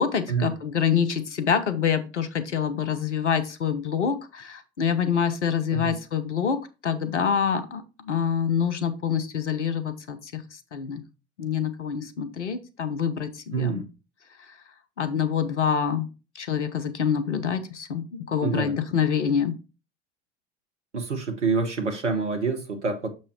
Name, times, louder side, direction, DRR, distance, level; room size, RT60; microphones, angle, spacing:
voice 1, 0.0-10.4 10.7-11.0 11.4-13.8 15.0-16.1 16.3-19.5, left 7 dB, 80° left, 1.1 m, -26 dB
voice 2, 13.5-13.9 18.4-18.8 20.9-23.1, right 4 dB, 85° right, 1.0 m, -27 dB
6.9 x 6.0 x 3.0 m
figure-of-eight pair, 75°, 35 cm